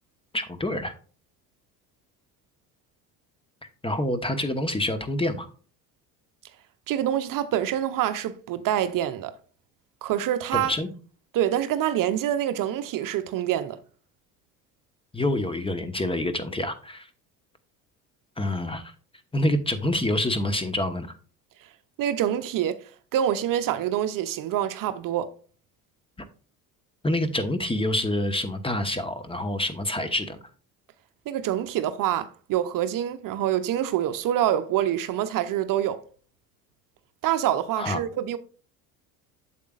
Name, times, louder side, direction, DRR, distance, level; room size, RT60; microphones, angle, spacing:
voice 1, 0.3-1.0 3.8-5.5 10.5-10.9 15.1-17.1 18.4-18.9 19.3-21.2 27.0-30.4 37.8-38.0, left 1 dB, 15° left, 1.1 m, -27 dB
voice 2, 6.9-9.3 10.0-10.7 11.3-13.8 22.0-22.9 23.1-25.3 31.3-36.0 37.2-38.4, right 11 dB, 50° right, 0.8 m, -26 dB
8.4 x 7.4 x 2.4 m
hypercardioid pair, 70°, 42 cm